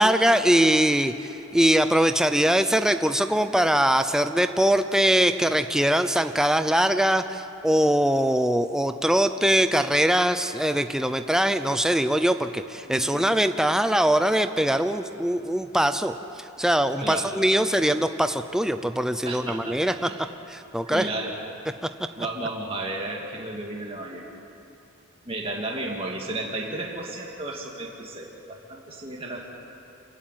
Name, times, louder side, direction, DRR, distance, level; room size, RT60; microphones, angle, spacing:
voice 1, 0.0-20.1 20.5-21.1, right 1 dB, 5° right, 9 dB, 0.5 m, -22 dB
voice 2, 12.9-13.3 17.0-17.3 19.2-20.2 20.9-21.3 22.2-24.3 25.3-29.4, right 2 dB, 25° right, -2 dB, 2.2 m, -33 dB
27.0 x 15.0 x 9.1 m, 2.8 s
head